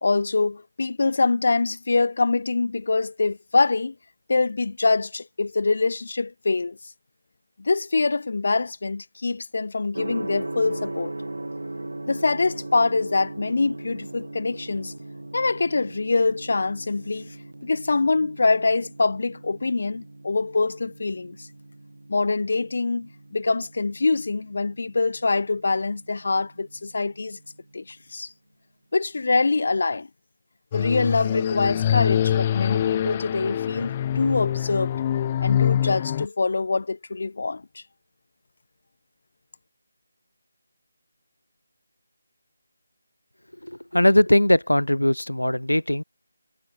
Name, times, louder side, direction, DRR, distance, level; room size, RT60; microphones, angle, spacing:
voice 1, 0.0-3.9 4.3-6.8 7.6-11.1 12.1-14.9 15.3-17.3 17.6-21.5 22.1-27.4 27.7-28.3 28.9-30.1 30.7-34.9 35.4-37.8, left 3 dB, 55° left, 1.3 m, -24 dB
Gong, 9.9-27.8, right 2 dB, 75° right, 4.3 m, -39 dB
sound 1, 30.7-36.3, left 10 dB, 25° left, 1.2 m, -24 dB
voice 2, 43.6-46.0, left 1 dB, 90° left, 3.4 m, -20 dB
figure-of-eight pair, 160°, 0 cm